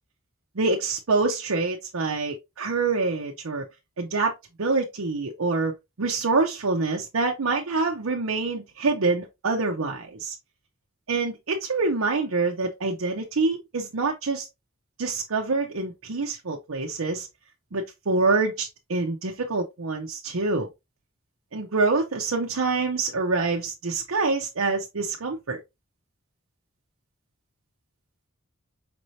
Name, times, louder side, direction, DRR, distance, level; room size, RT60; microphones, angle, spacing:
voice 1, 0.6-3.6 4.0-4.3 4.6-10.3 11.1-14.5 15.0-17.3 17.7-20.7 21.5-25.6, right 3 dB, 85° right, 0.8 m, -26 dB
5.1 x 3.2 x 2.7 m
head